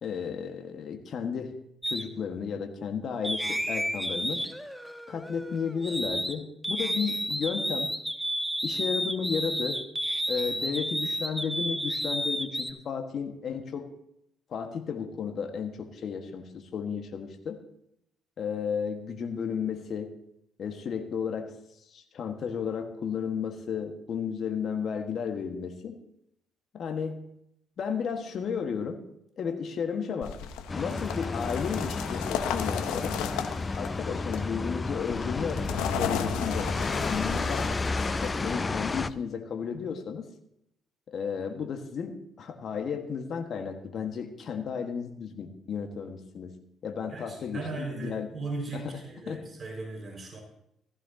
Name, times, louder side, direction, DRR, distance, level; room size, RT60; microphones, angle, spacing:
voice 1, 0.0-1.6 1.9-4.4 5.1-8.0 8.6-9.8 10.3-13.9 14.5-17.6 18.4-20.1 20.6-21.5 21.9-26.0 26.7-27.3 27.8-29.0 29.4-30.4 30.7-33.2 33.8-35.7 35.9-36.7 37.1-37.8 38.1-40.3 41.1-46.5 46.8-48.3 48.7-49.0 49.3-49.4, left 6 dB, 55° left, 5 dB, 1.5 m, -33 dB
sound 1, 1.8-2.0 3.2-6.3 6.6-12.7, equal, ahead, 1.2 m, -31 dB
sound 2, 30.2-39.1, left 8 dB, 75° left, 0.9 m, -35 dB
sound 3, 30.7-39.1, left 3 dB, 30° left, 0.4 m, -32 dB
voice 2, 47.1-50.4, right 3 dB, 40° right, 0 dB, 5.1 m, -37 dB
15.5 x 15.0 x 2.8 m, 0.77 s
hypercardioid pair, 50°, 0 cm